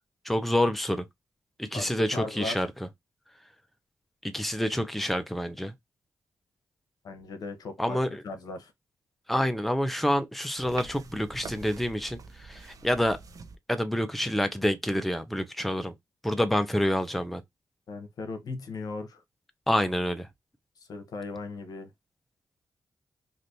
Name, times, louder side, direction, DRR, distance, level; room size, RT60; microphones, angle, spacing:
voice 1, 0.2-1.0 1.6-2.7 4.2-5.7 7.8-8.2 9.3-13.2 13.7-15.9 16.2-17.4 19.7-20.3, equal, ahead, 0.7 m, -27 dB
voice 2, 1.7-2.6 7.0-8.7 17.9-19.2 20.9-21.9, left 3 dB, 70° left, 0.9 m, -37 dB
sound 1, 10.6-13.6, right 4 dB, 60° right, 0.7 m, -45 dB
3.2 x 2.7 x 2.6 m
supercardioid pair, 45°, 7 cm